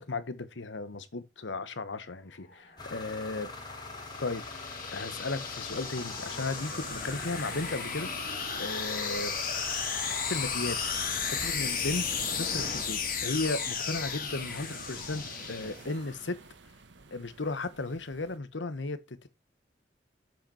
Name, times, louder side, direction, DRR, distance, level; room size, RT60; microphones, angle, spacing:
voice 1, 0.0-3.5 4.2-4.4 4.9-8.1 8.6-9.3 10.3-10.8 11.3-12.0 12.3-15.2 15.5-16.3 17.1-19.3, left 3 dB, 90° left, 1.1 m, -35 dB
sound 1, 2.7-16.1, left 6 dB, 50° left, 2.4 m, -35 dB
sound 2, 2.8-11.5, left 3 dB, 25° left, 1.6 m, -43 dB
sound 3, 5.0-18.4, right 3 dB, 80° right, 1.1 m, -51 dB
7.9 x 6.0 x 4.3 m
head